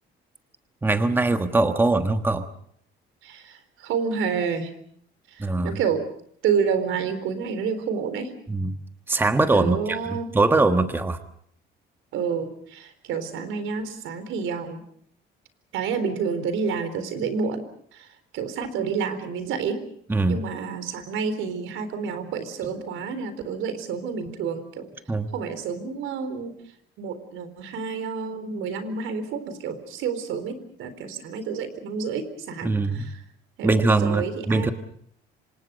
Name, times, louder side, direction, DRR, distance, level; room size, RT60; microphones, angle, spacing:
voice 1, 0.8-2.4 5.4-5.8 8.5-8.8 9.1-11.2 20.1-20.4 25.1-25.3 32.6-33.1 33.6-34.7, right 2 dB, 10° right, 8 dB, 1.3 m, -22 dB
voice 2, 3.2-4.7 5.3-6.0 6.4-8.3 9.5-10.3 12.1-14.8 15.7-17.6 17.9-18.1 18.3-19.8 20.3-24.9 25.3-26.5 27.0-33.2 33.6-34.7, right 6 dB, 75° right, 11 dB, 4.1 m, -29 dB
27.5 x 26.0 x 5.3 m, 0.64 s
cardioid pair, 150°, 20 cm